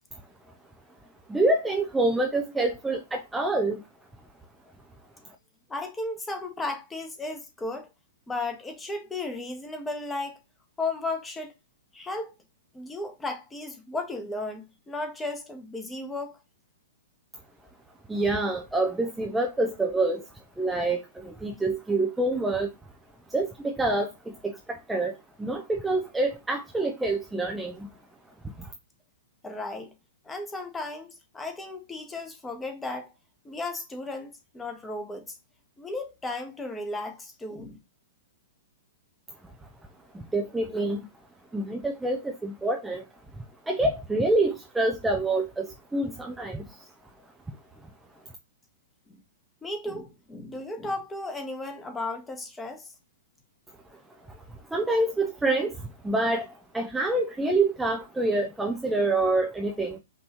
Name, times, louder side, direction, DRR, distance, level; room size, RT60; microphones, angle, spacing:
voice 1, 1.3-3.8 18.1-20.3 20.6-22.7 23.3-27.9 28.6-28.7 40.1-41.1 41.5-43.0 43.7-46.9 53.9-54.0 54.3-60.0, right 2 dB, 5° right, 0.5 m, -27 dB
voice 2, 5.7-7.9 8.3-10.4 10.8-11.5 11.9-12.3 12.7-16.4 29.4-29.9 30.2-33.1 33.4-35.4 35.8-37.8 49.1-49.2 49.6-52.9, left 2 dB, 10° left, 1.1 m, -35 dB
5.3 x 2.7 x 2.9 m
hypercardioid pair, 135°, 0 cm